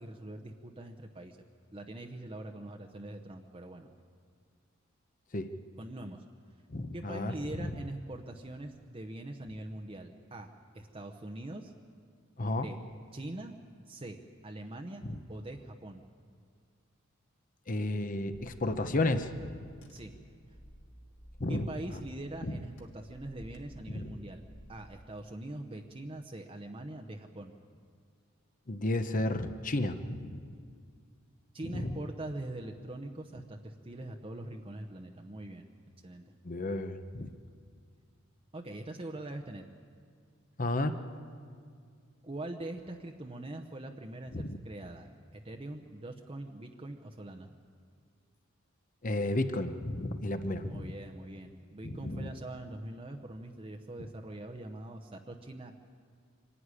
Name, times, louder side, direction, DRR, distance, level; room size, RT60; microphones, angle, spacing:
voice 1, 0.0-1.4 1.7-3.9 5.8-6.2 6.9-11.7 12.5-12.8 13.1-13.5 13.9-15.0 15.3-16.0 19.9-20.1 21.5-24.4 24.7-27.5 31.5-35.7 36.0-36.3 38.5-39.6 42.2-47.5 50.5-55.8, right 1 dB, 25° right, 3 dB, 0.8 m, -43 dB
voice 2, 6.7-7.3 7.6-7.7 12.4-12.7 15.1-15.2 17.7-19.3 21.4-21.7 22.4-22.6 23.9-24.1 28.7-30.4 31.6-32.0 36.4-37.3 40.6-41.0 44.3-44.6 49.0-50.9 51.8-52.3, left 2 dB, 40° left, 9 dB, 0.9 m, -32 dB
Car / Engine, 18.3-24.9, equal, 60° left, 2.2 m, -54 dB
25.0 x 11.0 x 9.8 m, 2.2 s
head